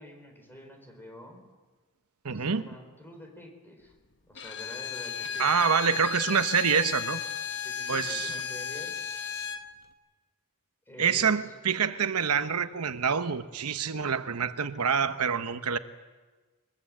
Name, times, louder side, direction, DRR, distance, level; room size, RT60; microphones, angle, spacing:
voice 1, 0.0-1.4 2.3-3.9 4.3-6.0 7.6-8.9 10.9-11.5, left 1 dB, 10° left, 3 dB, 4.7 m, -47 dB
voice 2, 2.2-2.6 5.4-7.2 7.9-8.3 11.0-15.8, right 6 dB, 85° right, 10 dB, 1.0 m, -26 dB
Bowed string instrument, 4.3-9.7, left 7 dB, 55° left, 1.3 m, -34 dB
22.5 x 22.0 x 7.8 m, 1.3 s
head